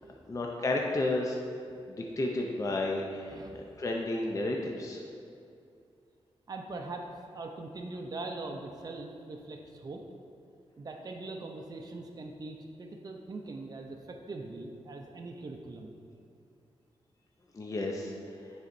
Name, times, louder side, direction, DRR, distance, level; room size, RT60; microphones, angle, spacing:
voice 1, 0.3-1.4 1.9-5.0 17.5-18.1, left 2 dB, 30° left, 0 dB, 0.5 m, -32 dB
voice 2, 3.3-3.7 6.5-7.1 7.3-10.0 10.8-15.9, right 2 dB, 40° right, 2 dB, 0.5 m, -41 dB
9.3 x 4.1 x 2.6 m, 2.4 s
cardioid pair, 80°, 10 cm